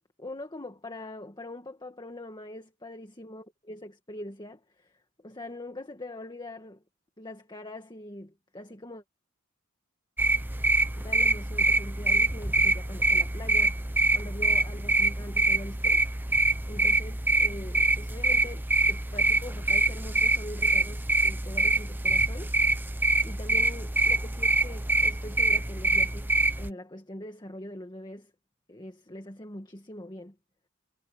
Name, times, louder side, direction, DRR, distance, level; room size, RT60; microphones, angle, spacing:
voice 1, 0.2-5.0 5.2-6.8 7.2-9.0 11.0-13.8 14.1-16.0 16.7-22.5 23.2-28.3 28.7-30.3, left 1 dB, 20° left, 1.9 m, -43 dB
sound 1, 10.2-26.7, right 2 dB, 10° right, 0.9 m, -25 dB
head